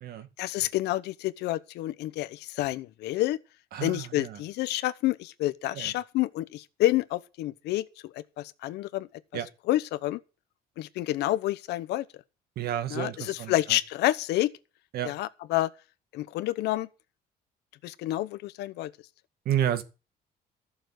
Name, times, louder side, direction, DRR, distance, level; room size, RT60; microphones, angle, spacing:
voice 1, 0.4-3.4 3.8-7.8 8.1-9.1 9.7-10.2 10.8-12.1 12.9-14.5 15.0-15.7 16.1-16.9 17.8-18.9, left 15 dB, 85° left, 1.0 m, -29 dB
voice 2, 3.7-4.4 5.7-5.9 9.3-9.5 12.6-13.8 14.9-15.1 19.5-19.8, right 11 dB, 65° right, 2.0 m, -31 dB
14.0 x 7.1 x 7.8 m
cardioid pair, 110°, 17 cm